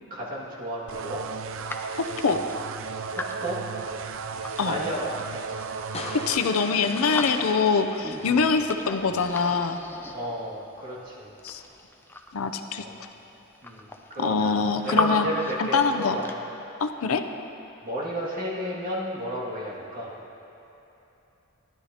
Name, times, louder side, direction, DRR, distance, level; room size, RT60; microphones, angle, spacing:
voice 1, 0.1-1.2 3.1-3.6 4.6-5.3 6.3-6.4 10.1-11.3 12.8-12.9 13.6-16.3 17.8-20.1, equal, 45° right, -6 dB, 2.2 m, -33 dB
sound 1, 0.9-6.4, right 5 dB, 65° right, 0.4 m, -35 dB
sound 2, 1.7-4.6 5.0-6.5 6.8-7.8 8.0-10.6 11.3-12.5 13.2-13.3 13.5-15.1 15.3-16.3, left 2 dB, 10° left, 0.5 m, -36 dB
voice 2, 2.0-2.4 4.6-4.7 6.3-9.8 11.4-11.6 12.3-12.8 14.2-15.3 15.6-16.2 16.8-17.2, left 5 dB, 85° left, 7 dB, 0.6 m, -24 dB
sound 3, 5.9-9.2, left 2 dB, 30° left, 0.9 m, -39 dB
16.0 x 11.0 x 2.9 m, 3.0 s
head